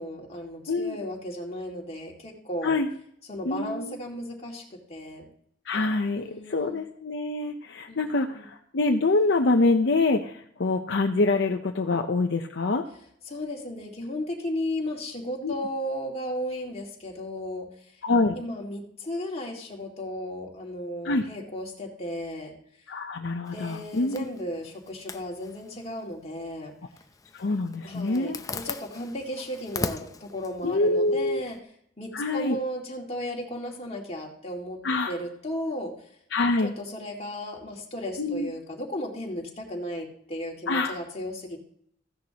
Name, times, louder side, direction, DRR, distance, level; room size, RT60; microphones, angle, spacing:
voice 1, 0.0-2.8 3.3-5.3 6.2-6.8 7.9-8.5 13.3-17.7 18.3-22.5 23.5-26.7 27.8-31.6 32.0-36.1 36.6-41.7, left 1 dB, 35° left, -1 dB, 2.1 m, -35 dB
voice 2, 3.4-4.0 5.7-12.8 15.4-15.5 18.0-18.3 21.0-21.2 22.9-24.2 27.3-28.4 30.6-31.4 32.1-32.6 34.8-35.1 36.3-36.7 38.2-38.5 40.7-41.0, left 2 dB, 65° left, 4 dB, 0.7 m, -25 dB
Zipper (clothing), 23.5-31.6, left 3 dB, 20° left, 0.6 m, -40 dB
15.0 x 10.5 x 2.9 m, 0.67 s
head